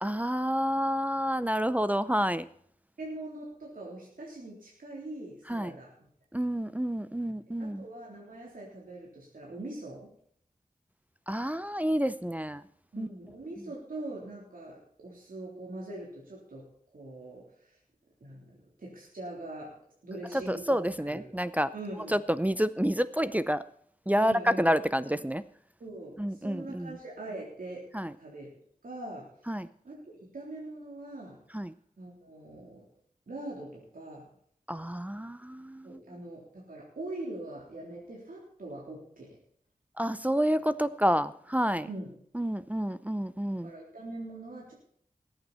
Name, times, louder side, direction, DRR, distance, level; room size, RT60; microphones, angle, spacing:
voice 1, 0.0-2.5 5.5-5.7 6.3-7.9 11.3-12.6 13.0-13.1 20.3-21.7 22.1-23.6 24.1-25.4 26.2-27.0 27.9-28.1 29.5-29.7 31.5-31.7 34.7-36.0 40.0-41.9 42.3-43.7, equal, 10° right, 14 dB, 0.6 m, -29 dB
voice 2, 3.0-6.1 7.6-10.1 12.9-17.8 18.2-19.8 20.0-20.8 21.1-21.2 21.7-22.1 24.2-24.7 25.8-27.9 28.2-28.5 28.8-29.3 29.8-31.4 32.0-32.8 33.3-34.3 35.8-39.4 41.9-42.1 43.6-44.7, right 2 dB, 90° right, -4 dB, 3.8 m, -42 dB
20.0 x 8.9 x 4.4 m, 0.63 s
wide cardioid pair, 70°, 14 cm